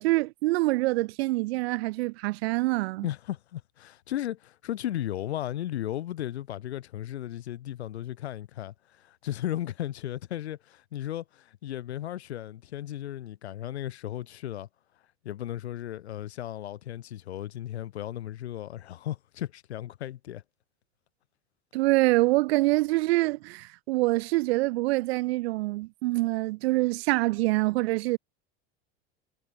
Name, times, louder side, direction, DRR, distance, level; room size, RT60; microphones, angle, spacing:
voice 1, 0.0-3.0 21.7-28.2, right 21 dB, 70° right, 0.5 m, -25 dB
voice 2, 3.0-14.7 15.2-20.4, left 12 dB, 85° left, 1.6 m, -35 dB
hypercardioid pair, 90°, 32 cm